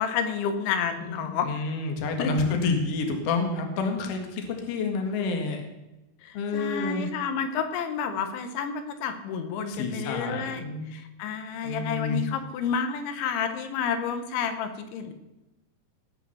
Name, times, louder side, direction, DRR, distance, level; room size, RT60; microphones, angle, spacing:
voice 1, 0.0-1.5 2.2-2.3 6.2-10.6 10.9-15.1, left 6 dB, 90° left, 8 dB, 3.5 m, -30 dB
voice 2, 1.0-5.6 6.3-7.1 9.7-10.9 11.6-12.3, left 4 dB, 50° left, 3 dB, 2.0 m, -29 dB
17.5 x 6.1 x 7.1 m, 0.97 s
omnidirectional pair, 5.1 m